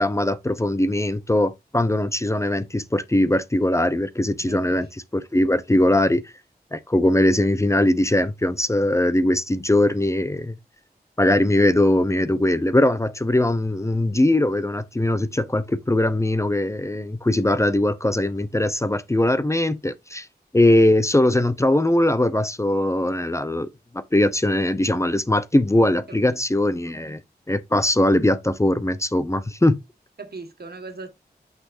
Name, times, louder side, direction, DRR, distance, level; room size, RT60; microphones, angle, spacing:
voice 1, 0.0-4.9 5.1-6.3 6.7-10.6 11.2-20.3 20.5-23.7 23.9-27.2 27.5-29.8, left 1 dB, 15° left, 0.7 m, -20 dB
voice 2, 4.4-4.9 26.1-26.2 26.9-27.2 30.2-31.1, right 3 dB, 70° right, 1.7 m, -39 dB
8.8 x 6.1 x 2.6 m
wide cardioid pair, 90°, 17 cm